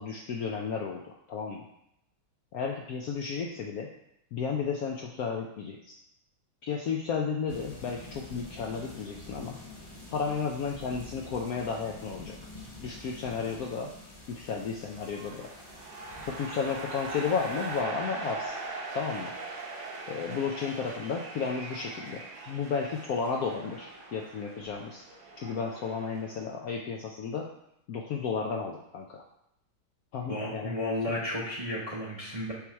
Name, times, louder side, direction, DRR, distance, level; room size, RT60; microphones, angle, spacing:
voice 1, 0.0-1.7 2.5-3.9 4.3-6.0 6.6-9.6 10.1-12.4 12.8-13.9 14.3-15.5 16.3-18.6 18.9-19.3 20.1-25.0 25.4-27.5 27.9-29.2 30.1-30.7, left 5 dB, 70° left, 0 dB, 0.9 m, -33 dB
sound 1, 7.5-17.8, left 2 dB, 20° left, 1.0 m, -47 dB
sound 2, 14.9-26.5, right 3 dB, 70° right, 1.7 m, -41 dB
voice 2, 30.3-32.5, left 1 dB, 30° right, -5 dB, 0.6 m, -33 dB
7.0 x 3.1 x 4.6 m, 0.81 s
omnidirectional pair, 2.0 m